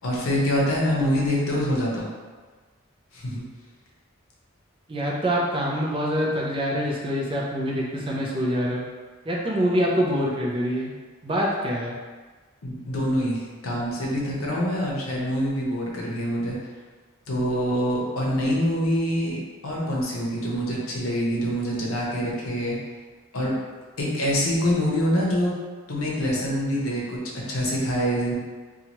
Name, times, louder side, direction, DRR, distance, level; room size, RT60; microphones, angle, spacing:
voice 1, 0.0-2.1 3.1-3.4 12.6-16.6 17.3-22.8 23.3-23.6 24.0-25.5 25.9-27.2 27.5-28.3, equal, 85° left, -4 dB, 0.7 m, -25 dB
voice 2, 4.9-8.8 9.3-10.9 11.2-12.0, equal, 25° right, -3 dB, 0.4 m, -25 dB
2.9 x 2.3 x 2.9 m, 1.4 s
head